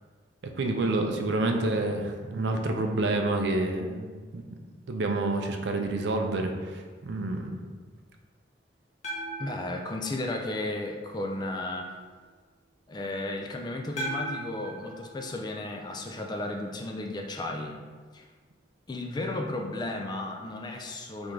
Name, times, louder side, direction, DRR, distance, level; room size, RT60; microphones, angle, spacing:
voice 1, 0.4-4.5 4.9-7.6, right 2 dB, 65° right, 3 dB, 0.4 m, -28 dB
sound 1, 9.0-11.2 14.0-16.3, right 1 dB, 40° left, 0.8 m, -39 dB
voice 2, 9.4-12.0 12.9-17.8 18.1-18.3 18.9-21.3, left 2 dB, 25° left, 2 dB, 0.3 m, -34 dB
3.7 x 3.4 x 3.1 m, 1.4 s
head